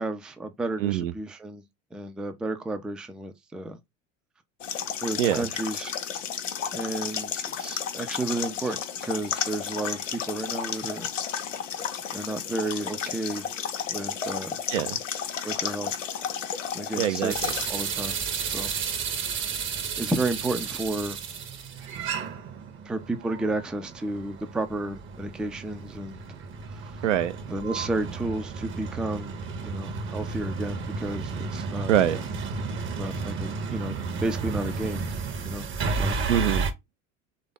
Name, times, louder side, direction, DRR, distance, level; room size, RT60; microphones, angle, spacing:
voice 1, 0.0-1.6 1.9-3.8 5.0-5.9 6.7-11.1 12.1-13.5 13.9-14.6 15.4-16.0 16.7-17.3 17.7-18.7 19.2-19.4 20.0-21.2 22.9-26.2 26.8-27.0 27.5-29.3 29.6-31.9 33.0-35.0 35.4-35.7 35.9-36.3, right 2 dB, ahead, 0.3 m, -32 dB
voice 2, 0.8-1.1 5.2-5.5 14.7-15.0 16.9-17.5 27.0-27.4 31.9-32.2 36.3-36.7, right 10 dB, 75° right, 0.6 m, -24 dB
sound 1, 4.6-17.7, left 8 dB, 80° left, 0.6 m, -32 dB
sound 2, 17.3-36.7, right 5 dB, 30° right, 0.7 m, -32 dB
3.3 x 2.5 x 3.8 m
figure-of-eight pair, 70°, 37 cm